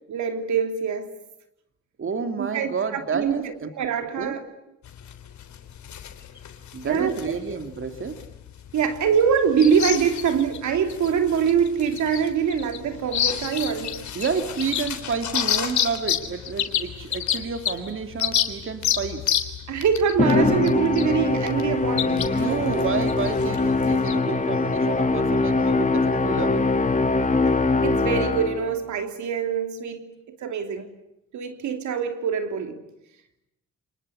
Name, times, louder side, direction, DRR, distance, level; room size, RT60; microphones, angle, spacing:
voice 1, 0.1-1.1 2.4-4.4 6.8-7.1 8.7-14.1 19.7-22.7 27.8-30.9 31.3-32.8, right 7 dB, 70° right, 3.1 m, -24 dB
voice 2, 2.0-3.7 4.2-4.4 6.7-8.3 14.1-19.3 22.0-26.7, right 5 dB, 45° right, 2.7 m, -30 dB
sound 1, 4.9-24.1, left 10 dB, 70° left, 3.5 m, -30 dB
Musical instrument, 20.2-28.7, left 3 dB, 25° left, 2.3 m, -22 dB
29.0 x 20.5 x 9.9 m
cardioid pair, 90°, 30 cm